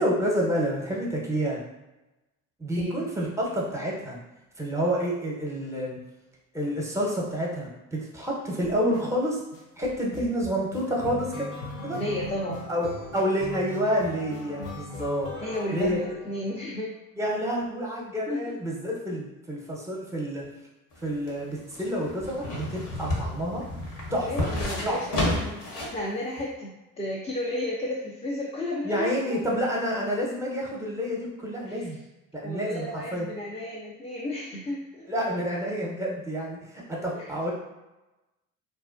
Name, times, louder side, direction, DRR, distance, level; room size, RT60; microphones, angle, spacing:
voice 1, 0.0-1.6 2.6-4.2 4.6-6.0 6.5-9.4 9.8-11.5 11.8-12.0 12.7-12.9 13.1-15.4 15.7-16.0 17.2-20.5 21.0-23.7 24.1-24.5 24.9-25.3 28.8-32.0 32.3-33.3 35.1-37.5, equal, 5° right, -3 dB, 0.8 m, -29 dB
sound 1, 8.6-9.0 9.5-16.7, left 3 dB, 70° left, 0.6 m, -39 dB
voice 2, 11.9-12.6 15.4-16.9 18.3-18.5 24.2-29.6 31.7-31.9 32.4-35.1 37.1-37.3, left 1 dB, 15° left, -5 dB, 0.5 m, -33 dB
sound 2, 20.9-26.0 26.4-26.5, left 1 dB, 50° left, 1.0 m, -31 dB
2.5 x 2.1 x 2.5 m, 1.0 s
hypercardioid pair, 60°, 42 cm